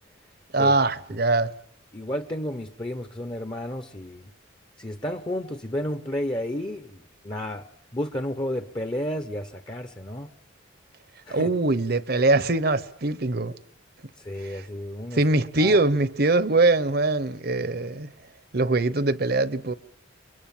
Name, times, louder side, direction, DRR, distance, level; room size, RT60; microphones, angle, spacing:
voice 1, 0.5-1.5 11.3-13.5 14.4-14.6 15.1-18.1 18.5-19.7, right 2 dB, 50° right, 1.0 m, -22 dB
voice 2, 1.9-4.3 4.8-7.7 7.9-10.3 11.3-11.5 14.2-15.2 15.6-15.8, left 1 dB, 25° left, 1.0 m, -32 dB
29.5 x 23.5 x 7.4 m
head